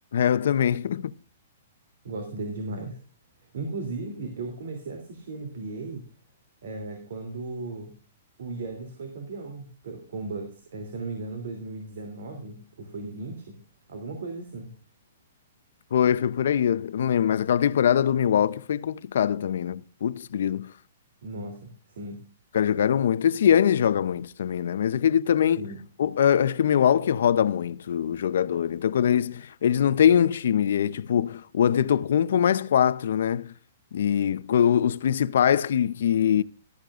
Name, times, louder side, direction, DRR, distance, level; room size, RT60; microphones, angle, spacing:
voice 1, 0.1-1.1 15.9-20.7 22.5-25.6 26.0-33.5 33.9-36.4, left 9 dB, 70° left, 0.6 m, -23 dB
voice 2, 2.0-3.0 3.5-6.0 6.6-7.9 8.4-13.5 13.9-14.7 21.2-21.7 22.0-22.2 25.6-25.8, right 3 dB, 70° right, 2.9 m, -36 dB
14.0 x 13.0 x 2.5 m
hypercardioid pair, 160°, 0 cm